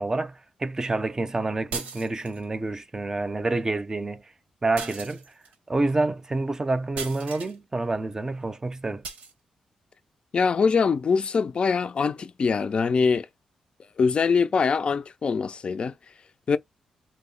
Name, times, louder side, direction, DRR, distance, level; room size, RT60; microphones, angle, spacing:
voice 1, 0.0-4.2 4.6-5.2 5.7-9.0, right 2 dB, 25° right, 0.6 m, -28 dB
sound 1, 1.7-2.4 4.8-5.5 7.0-7.6 9.0-9.3, right 5 dB, 90° right, 0.9 m, -37 dB
voice 2, 10.3-13.3 14.0-15.9 16.5-16.6, left 5 dB, 50° left, 0.4 m, -23 dB
2.8 x 2.1 x 3.8 m
cardioid pair, 60°, 2 cm